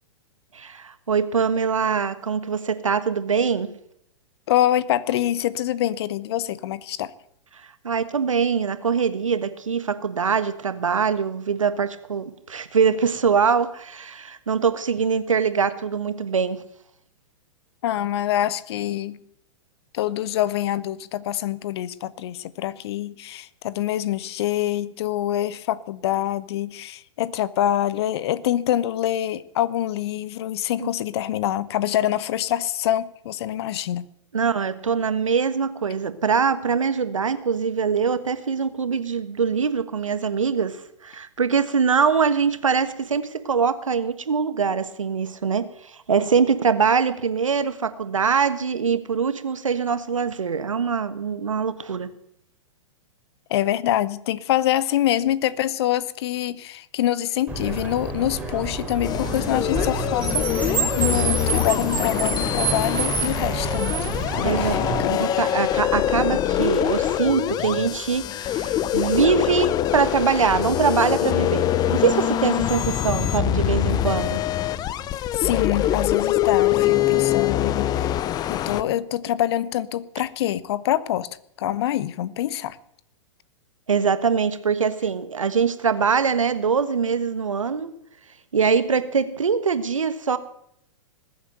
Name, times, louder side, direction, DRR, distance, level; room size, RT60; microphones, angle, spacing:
voice 1, 0.5-3.7 7.8-16.6 30.8-30.9 34.3-52.1 64.4-74.4 83.9-87.9 88.5-90.4, right 6 dB, 80° right, 1.3 m, -23 dB
voice 2, 4.5-7.1 17.8-19.2 19.9-34.0 53.5-65.1 75.3-78.1 78.5-81.3 81.6-82.8, left 12 dB, 55° left, 0.9 m, -25 dB
Car, 57.5-65.0, right 3 dB, 5° right, 4.0 m, -27 dB
sound 1, 59.0-78.8, left 12 dB, 25° left, 0.6 m, -24 dB
20.0 x 8.1 x 7.8 m
figure-of-eight pair, 110°, 16 cm